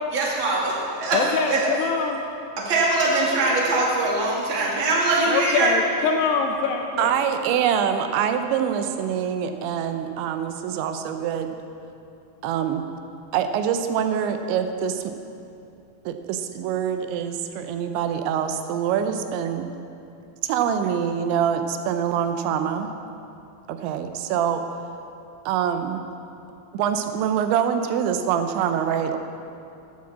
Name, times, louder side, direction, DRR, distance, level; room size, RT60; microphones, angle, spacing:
voice 1, 0.1-1.2 1.5-1.7 2.6-5.7, right 2 dB, 40° right, -4 dB, 1.8 m, -22 dB
voice 2, 1.1-2.2 5.3-7.1, left 5 dB, 85° left, 2 dB, 2.4 m, -24 dB
voice 3, 7.0-11.6 12.4-12.8 13.3-15.1 16.1-19.7 20.4-22.9 23.7-24.6 25.5-26.0 26.7-29.2, right 8 dB, 85° right, 7 dB, 3.0 m, -25 dB
11.5 x 8.4 x 7.3 m, 2.7 s
omnidirectional pair, 5.2 m